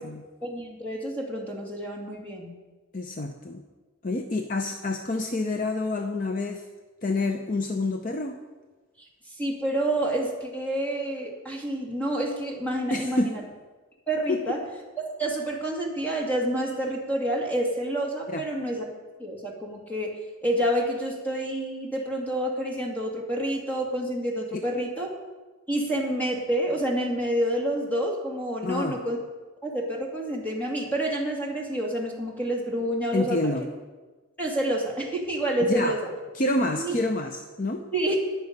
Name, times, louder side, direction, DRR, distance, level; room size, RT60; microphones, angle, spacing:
voice 1, 0.4-2.5 9.0-9.1 9.4-13.4 14.1-14.6 15.2-18.9 19.2-25.1 25.7-29.2 29.6-33.4 34.4-36.0 36.8-36.9 37.9-38.2, right 1 dB, 10° left, -2 dB, 2.4 m, -28 dB
voice 2, 2.9-3.6 4.0-6.7 7.0-8.4 12.9-13.3 14.3-14.4 18.3-18.4 28.6-29.0 33.1-33.7 35.6-36.0 36.3-37.9, left 2 dB, 40° left, 5 dB, 0.6 m, -28 dB
20.0 x 7.1 x 5.3 m, 1.3 s
head